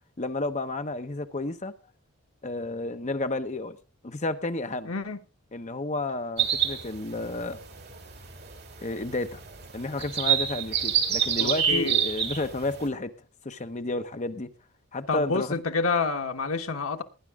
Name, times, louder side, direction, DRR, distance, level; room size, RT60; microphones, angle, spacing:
voice 1, 0.2-1.7 2.4-3.8 4.0-4.9 5.5-7.6 8.8-9.4 9.7-13.1 13.4-14.5 14.9-15.5, left 2 dB, 35° left, 0.9 m, -31 dB
voice 2, 4.8-5.2 11.4-11.9 15.1-17.0, left 4 dB, 80° left, 1.2 m, -28 dB
sound 1, 6.4-12.9, right 9 dB, 50° right, 2.6 m, -28 dB
18.5 x 9.7 x 3.6 m
head